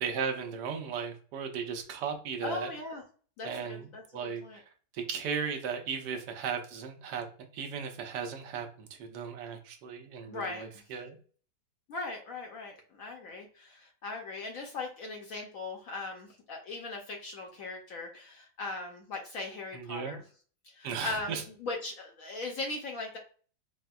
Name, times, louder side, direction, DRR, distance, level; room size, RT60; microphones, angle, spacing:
voice 1, 0.0-2.7 3.4-4.6 4.9-7.2 7.5-11.2 19.7-20.1 20.8-21.4, right 6 dB, 80° right, 4 dB, 1.2 m, -36 dB
voice 2, 2.4-3.0 3.4-4.6 10.3-10.8 11.9-20.2 20.6-23.2, left 3 dB, 70° left, 2 dB, 0.8 m, -39 dB
4.2 x 2.1 x 2.2 m, 0.42 s
omnidirectional pair, 1.9 m